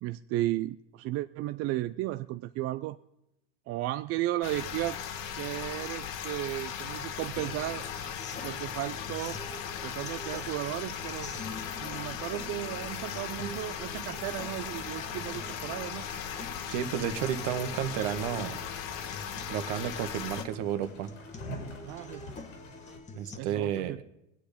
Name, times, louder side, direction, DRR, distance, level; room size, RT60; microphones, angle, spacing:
voice 1, 0.0-3.0 3.7-5.0 5.4-7.8 8.4-9.4 9.8-11.4 11.8-16.1 21.8-22.2 23.3-24.0, right 16 dB, 40° right, 0.5 m, -34 dB
sound 1, 4.4-20.4, left 8 dB, 55° left, 1.7 m, -38 dB
sound 2, 7.4-23.4, left 2 dB, 20° left, 1.4 m, -46 dB
sound 3, 13.1-23.0, left 1 dB, 90° left, 4.4 m, -49 dB
voice 2, 16.7-18.6 19.5-21.1 23.1-24.0, right 10 dB, 60° right, 1.5 m, -32 dB
21.0 x 8.5 x 5.1 m
supercardioid pair, 115°, 37 cm